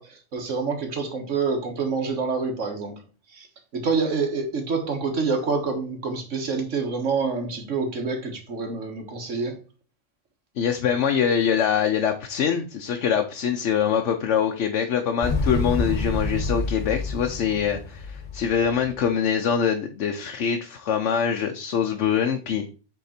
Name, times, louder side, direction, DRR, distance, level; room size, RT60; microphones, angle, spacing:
voice 1, 0.0-3.0 3.3-3.5 3.7-9.6, right 4 dB, 85° right, 4 dB, 1.7 m, -27 dB
voice 2, 10.6-22.7, left 7 dB, 75° left, 4 dB, 1.0 m, -24 dB
Motorcycle, 15.2-19.1, left 2 dB, 40° left, 1.3 m, -28 dB
8.1 x 3.7 x 4.3 m, 0.36 s
omnidirectional pair, 1.2 m